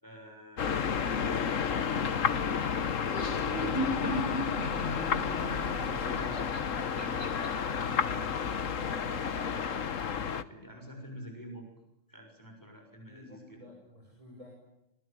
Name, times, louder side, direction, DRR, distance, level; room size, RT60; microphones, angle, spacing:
voice 1, 0.0-2.8 3.5-6.4 6.9-11.7 12.1-13.7, equal, 15° left, 3 dB, 6.5 m, -49 dB
sound 1, 0.6-10.4, left 7 dB, 85° left, 1.6 m, -31 dB
Laughter, 2.9-7.5, equal, 45° left, 5.3 m, -36 dB
sound 2, 3.8-8.8, right 1 dB, 5° right, 6.3 m, -50 dB
voice 2, 13.0-14.5, left 2 dB, 25° right, 0 dB, 6.8 m, -52 dB
26.5 x 23.0 x 8.8 m, 0.90 s
omnidirectional pair, 1.3 m